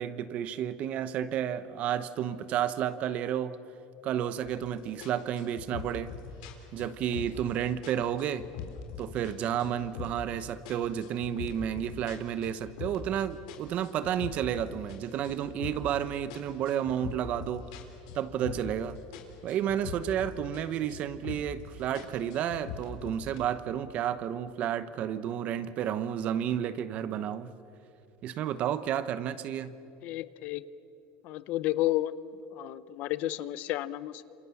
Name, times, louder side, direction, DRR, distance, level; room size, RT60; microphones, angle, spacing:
voice 1, 0.0-3.6 4.0-6.1 6.7-8.5 9.0-17.6 18.1-19.0 19.4-27.5 28.2-29.8, right 10 dB, 40° right, 14 dB, 1.0 m, -31 dB
sound 1, 4.4-4.7 5.0-7.5 7.8-9.3 9.6-10.3 10.6-13.2 13.5-16.0 16.3-18.8 19.1-20.6 20.9-21.6 21.9-23.4, left 7 dB, 85° left, 3.9 m, -42 dB
voice 2, 30.0-30.7 31.2-32.1 32.5-34.2, left 15 dB, 50° left, 16 dB, 0.7 m, -31 dB
28.0 x 27.0 x 7.2 m, 2.8 s
cardioid pair, 155°, 4 cm